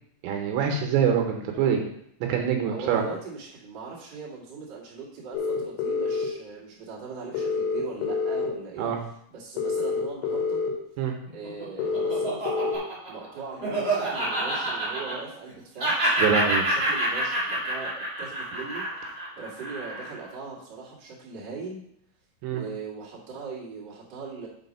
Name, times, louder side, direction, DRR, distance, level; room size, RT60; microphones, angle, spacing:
voice 1, 0.2-1.8 2.3-3.0 8.8-9.0 11.0-11.1 16.2-16.7 22.4-22.6, right 7 dB, 80° right, 2 dB, 2.9 m, -24 dB
voice 2, 2.7-10.6 11.3-15.9 16.7-17.9 18.2-21.8 22.5-24.5, right 4 dB, 40° right, -6 dB, 1.6 m, -40 dB
sound 1, 5.3-6.3 7.3-8.5 9.6-10.7 11.8-12.8, left 4 dB, 80° left, 3.4 m, -27 dB
Laughter, 11.3-15.5 15.8-20.2, right 1 dB, 25° right, 3.1 m, -28 dB
6.5 x 5.0 x 5.4 m, 0.72 s
omnidirectional pair, 5.3 m